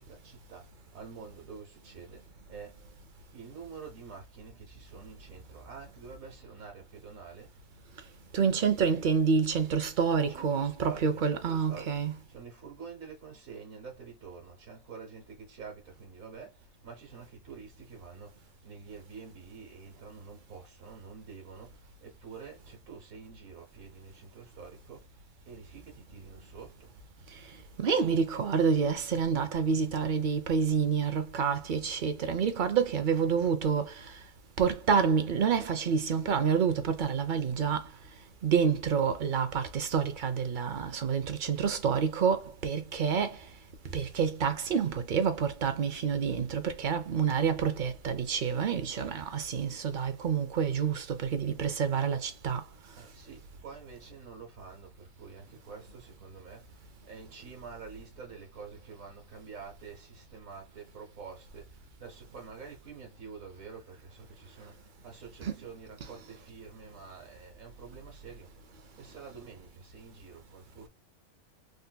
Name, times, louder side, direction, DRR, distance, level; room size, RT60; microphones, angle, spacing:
voice 1, 0.0-2.8 3.3-7.5 10.3-25.1 25.5-26.9 52.9-68.5 69.0-70.9, right 5 dB, 90° right, 1.5 m, -48 dB
voice 2, 8.3-12.1 27.8-34.2 34.6-37.9 38.4-43.5 43.9-52.6 65.4-65.6, right 6 dB, 55° right, 0.6 m, -28 dB
3.8 x 2.5 x 2.2 m
omnidirectional pair, 1.3 m